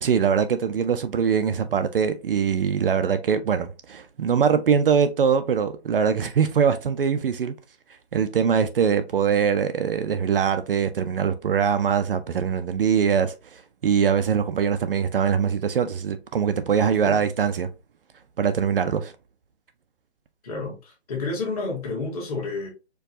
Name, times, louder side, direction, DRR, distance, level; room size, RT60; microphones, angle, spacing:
voice 1, 0.0-7.5 8.1-17.7 18.4-19.1, right 7 dB, 55° right, 0.5 m, -22 dB
voice 2, 20.4-22.7, left 3 dB, 35° left, 1.6 m, -30 dB
4.5 x 2.3 x 2.6 m
hypercardioid pair, 160°, 33 cm